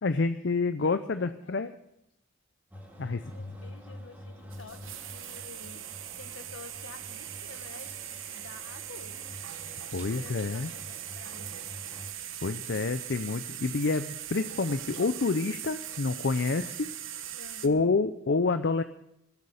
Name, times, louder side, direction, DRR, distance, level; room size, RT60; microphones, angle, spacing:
voice 1, 0.0-1.7 3.0-3.2 9.9-10.7 12.4-16.9 17.6-18.8, left 3 dB, 55° left, 10 dB, 0.5 m, -28 dB
voice 2, 0.8-1.7 3.0-5.8 6.2-9.3 9.6-11.6 17.4-17.9, left 4 dB, 70° left, 7 dB, 1.5 m, -50 dB
sound 1, 2.7-12.1, equal, 10° right, 2.1 m, -48 dB
sound 2, 4.5-17.7, right 11 dB, 75° right, 1.1 m, -40 dB
21.0 x 8.3 x 6.5 m, 0.82 s
head